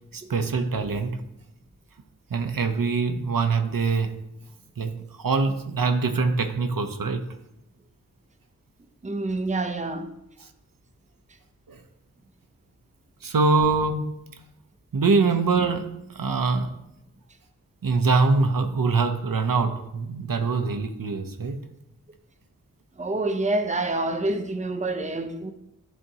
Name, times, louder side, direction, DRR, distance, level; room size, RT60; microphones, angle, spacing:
voice 1, 0.1-1.2 2.3-4.2 4.8-7.3 10.4-10.5 11.7-11.8 13.2-14.1 14.9-16.7 17.8-21.6, right 4 dB, 75° right, 0.6 m, -24 dB
voice 2, 9.0-10.1 23.0-25.5, right 2 dB, 20° right, 0.6 m, -27 dB
10.5 x 3.6 x 2.8 m
wide cardioid pair, 45°, 34 cm